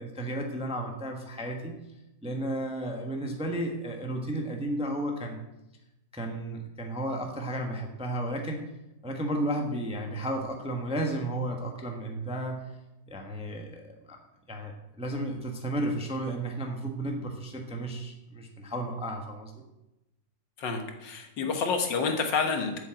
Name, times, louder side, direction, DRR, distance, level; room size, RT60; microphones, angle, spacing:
voice 1, 0.0-1.8 2.2-5.4 6.1-8.6 9.0-12.7 13.1-14.2 14.5-19.5, right 1 dB, 5° right, 2 dB, 0.8 m, -33 dB
voice 2, 20.6-22.8, left 5 dB, 75° left, 5 dB, 1.9 m, -29 dB
8.1 x 7.0 x 7.7 m, 0.96 s
omnidirectional pair, 2.0 m